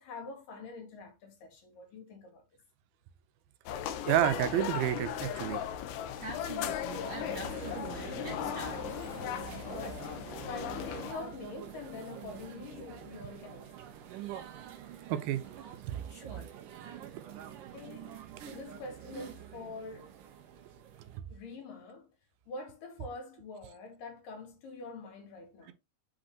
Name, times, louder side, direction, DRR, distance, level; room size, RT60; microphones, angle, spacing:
voice 1, 0.0-2.4 9.6-13.7 17.4-20.1 21.3-22.1 22.5-25.7, left 3 dB, 65° left, 3.5 m, -45 dB
sound 1, 3.7-11.1, left 9 dB, 90° left, 2.8 m, -37 dB
voice 2, 4.1-5.6 15.1-15.4, right 12 dB, 85° right, 2.6 m, -29 dB
voice 3, 6.2-8.8 16.1-16.5, right 2 dB, 50° right, 1.5 m, -44 dB
sound 2, 6.9-21.2, right 10 dB, 70° right, 2.7 m, -46 dB
7.4 x 5.1 x 2.9 m
omnidirectional pair, 4.3 m